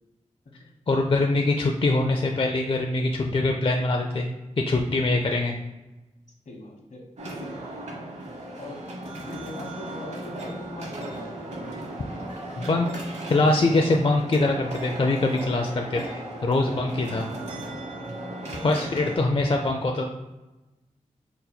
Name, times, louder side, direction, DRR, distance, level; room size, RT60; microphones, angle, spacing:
voice 1, 0.9-4.3 4.7-5.6 12.6-12.9 13.3-17.3 18.6-20.1, left 2 dB, 45° left, 2 dB, 0.4 m, -23 dB
voice 2, 6.4-7.7 8.5-11.5 16.7-17.1 18.4-19.3, left 1 dB, 70° left, 0 dB, 1.0 m, -42 dB
sound 1, 7.2-19.2, right 1 dB, 60° right, 1.0 m, -36 dB
4.0 x 2.1 x 4.1 m, 1.1 s
cardioid pair, 50°, 13 cm